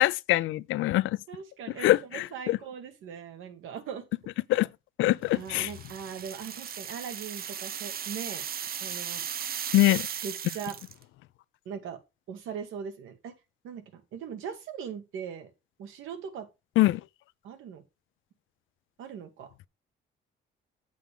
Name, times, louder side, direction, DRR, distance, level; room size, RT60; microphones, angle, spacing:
voice 1, 0.0-1.1 1.8-2.6 4.5-4.7 5.0-5.7 9.7-10.0 16.8-17.0, left 17 dB, 85° left, 0.5 m, -23 dB
voice 2, 1.3-4.1 5.3-8.4 8.8-9.2 10.2-10.8 11.7-12.0 12.3-13.3 13.6-15.5 15.8-16.5 16.8-16.9 17.4-17.8 19.0-19.5, right 7 dB, 85° right, 1.8 m, -40 dB
sound 1, 5.5-11.0, right 8 dB, 50° right, 0.7 m, -37 dB
8.4 x 7.6 x 3.5 m
cardioid pair, 90°, 20 cm